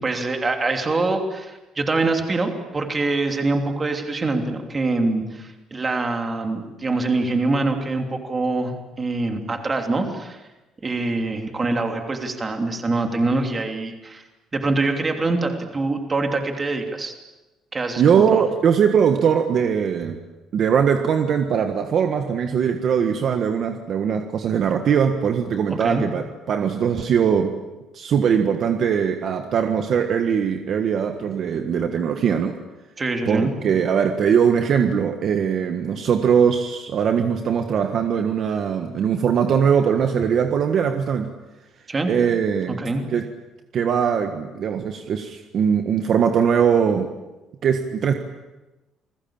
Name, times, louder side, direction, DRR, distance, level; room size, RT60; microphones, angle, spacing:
voice 1, 0.0-10.4 10.8-14.2 14.5-17.1 17.7-18.0 18.3-18.4 25.7-26.0 33.0-33.5 41.9-42.1 42.7-43.0, right 3 dB, 20° right, 4 dB, 3.0 m, -24 dB
voice 2, 18.0-20.2 20.5-27.6 27.9-32.6 33.2-41.3 42.1-42.8 43.1-43.3 43.7-47.1 47.6-48.1, right 7 dB, 45° right, 6 dB, 1.5 m, -21 dB
29.5 x 21.0 x 8.9 m, 1.1 s
cardioid pair, 175°, 0 cm